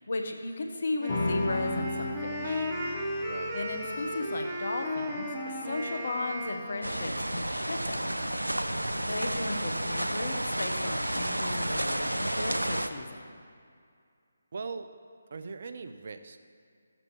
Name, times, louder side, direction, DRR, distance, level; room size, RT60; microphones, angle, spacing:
voice 1, 0.0-2.7 3.5-8.4 8.7-13.4, left 2 dB, 55° left, 4 dB, 1.1 m, -36 dB
Wind instrument woodwind instrument, 1.0-7.2, equal, 10° right, 1.2 m, -35 dB
sound 1, 1.1-7.8, left 2 dB, 40° left, 1.4 m, -37 dB
voice 2, 3.2-3.6 14.5-14.9 15.3-16.4, right 4 dB, 50° right, 8 dB, 0.6 m, -40 dB
sound 2, 6.8-12.9, right 1 dB, 85° right, 0.6 m, -31 dB
15.5 x 7.7 x 3.2 m, 2.3 s
figure-of-eight pair, 150°, 0 cm